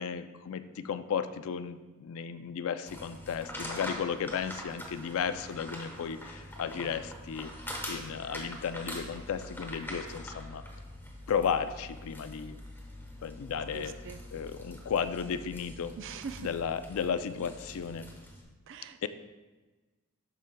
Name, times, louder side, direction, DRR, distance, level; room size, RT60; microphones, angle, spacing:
voice 1, 0.0-7.5 7.9-10.6 11.3-12.6 13.2-14.0 14.3-15.9 16.4-18.1 19.0-19.1, left 7 dB, 65° left, 11 dB, 0.4 m, -34 dB
sound 1, 2.9-18.4, left 1 dB, 10° left, 1.1 m, -44 dB
voice 2, 13.7-14.2 16.0-16.5 18.7-19.1, right 6 dB, 60° right, 11 dB, 0.4 m, -42 dB
12.0 x 4.8 x 2.2 m, 1.2 s
head